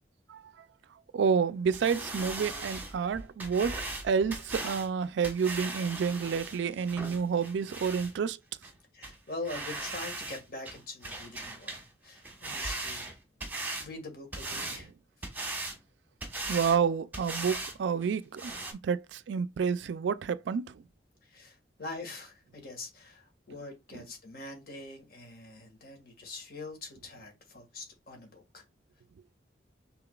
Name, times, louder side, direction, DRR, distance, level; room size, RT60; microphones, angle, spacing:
voice 1, 0.3-0.7 1.1-8.4 14.6-14.8 16.5-20.8 23.9-24.0, right 6 dB, 85° right, 0.3 m, -29 dB
sound 1, 1.7-8.1 8.6-8.7 9.0-9.2 9.5-10.4 10.7-11.9 12.2-13.9 14.3-14.8 15.2-15.8 16.2-16.8 17.1-17.8 18.0-18.1 18.4-18.7, right 2 dB, 10° right, 1.1 m, -38 dB
voice 2, 8.9-13.1 13.8-14.9 21.2-28.6, left 2 dB, 55° left, 1.7 m, -43 dB
5.8 x 3.6 x 2.3 m
head